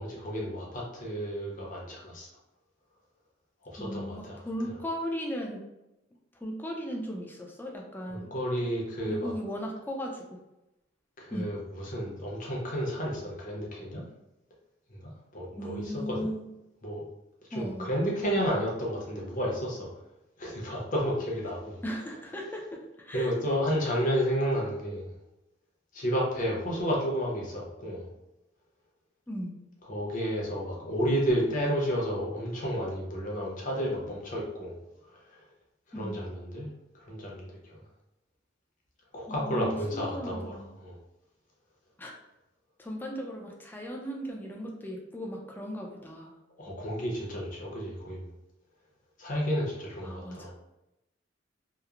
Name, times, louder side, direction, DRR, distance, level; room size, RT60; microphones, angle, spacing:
voice 1, 0.0-2.3 3.6-4.4 8.1-9.3 11.2-14.0 14.9-16.3 16.8-17.0 17.5-19.9 20.4-21.8 23.1-25.1 25.9-28.1 29.8-34.8 35.9-36.7 37.1-37.8 39.1-40.9 46.6-48.3 49.2-50.5, equal, 45° left, -3 dB, 0.7 m, -31 dB
voice 2, 3.8-5.6 6.4-8.3 9.1-10.4 11.3-11.5 15.6-16.5 17.5-17.9 21.8-23.4 29.3-29.5 35.9-36.2 39.3-40.7 42.0-42.1 42.8-46.3 50.0-50.5, equal, 10° left, 0 dB, 0.4 m, -37 dB
2.9 x 2.0 x 2.4 m, 0.92 s
head